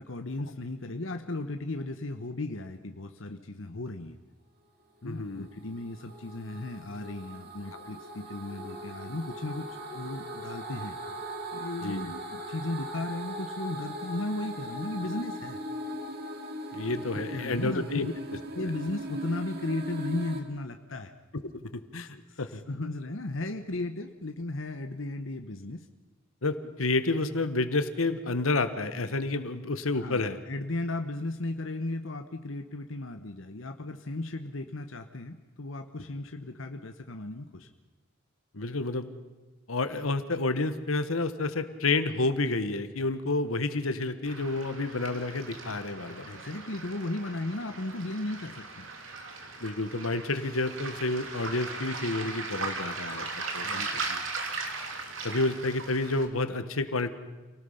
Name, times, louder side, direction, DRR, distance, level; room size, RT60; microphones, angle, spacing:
voice 1, 0.0-4.2 5.0-11.0 11.5-15.6 16.8-18.1 18.5-21.1 22.1-25.9 29.9-37.7 46.2-48.9 53.6-54.3, left 2 dB, 65° left, 6 dB, 1.1 m, -36 dB
voice 2, 5.0-5.5 11.8-12.2 16.7-18.1 21.3-22.6 26.4-30.4 38.5-39.1 39.7-46.3 49.6-53.3 53.5-54.0 55.2-57.1, left 2 dB, 90° left, 11 dB, 1.4 m, -30 dB
sound 1, 5.3-20.4, equal, 50° right, 2.4 m, -39 dB
Waves surf, 44.3-56.3, right 3 dB, 70° right, 3.1 m, -38 dB
27.5 x 18.5 x 5.7 m, 1.3 s
head